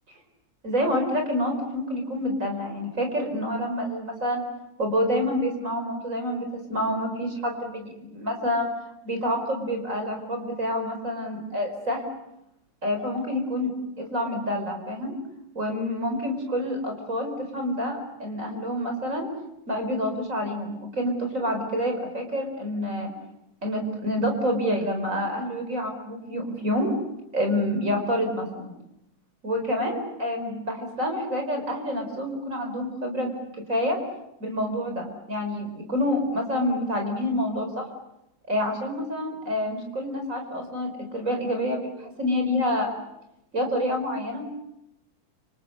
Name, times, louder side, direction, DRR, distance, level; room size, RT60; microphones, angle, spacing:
voice 1, 0.6-4.4 4.8-8.7 9.0-12.0 12.8-13.7 14.0-15.1 15.6-19.3 19.7-23.1 23.6-26.9 27.3-28.7 29.4-33.3 33.7-34.0 34.4-37.9 38.5-42.9 43.5-44.4, left 1 dB, 40° right, 4 dB, 5.4 m, -27 dB
30.0 x 26.5 x 6.7 m, 0.82 s
omnidirectional pair, 2.2 m